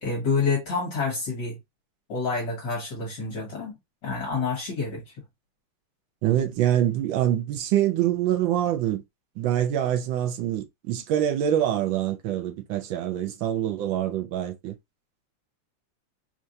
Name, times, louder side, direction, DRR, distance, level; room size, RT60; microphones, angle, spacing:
voice 1, 0.0-1.6 2.1-3.7 4.0-5.0, left 4 dB, 55° left, 1.9 m, -28 dB
voice 2, 6.2-9.0 9.4-14.8, right 11 dB, 70° right, 1.3 m, -25 dB
4.5 x 2.5 x 2.6 m
omnidirectional pair, 2.4 m